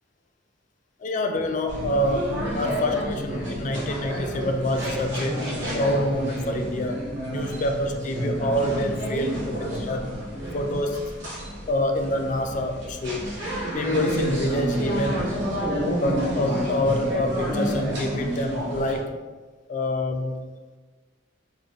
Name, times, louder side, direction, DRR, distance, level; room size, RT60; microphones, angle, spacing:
voice 1, 1.0-10.1 10.5-11.1 11.7-13.3 13.7-15.4 16.0-19.1 19.7-20.4, left 1 dB, 40° left, 5 dB, 0.3 m, -27 dB
sound 1, 1.7-19.0, equal, 70° right, 1.4 m, -29 dB
4.2 x 3.1 x 3.0 m, 1.3 s
head